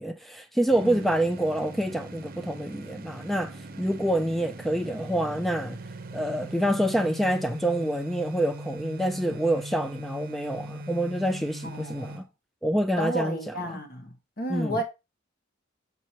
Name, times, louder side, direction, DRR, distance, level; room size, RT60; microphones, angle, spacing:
voice 1, 0.0-5.8 6.1-12.2 12.6-13.4 14.5-14.8, right 1 dB, ahead, 0.3 m, -27 dB
sound 1, 0.7-12.3, right 1 dB, 50° right, 0.7 m, -40 dB
voice 2, 11.6-12.2 13.0-14.8, equal, 50° left, 1.4 m, -33 dB
6.2 x 5.5 x 2.9 m
head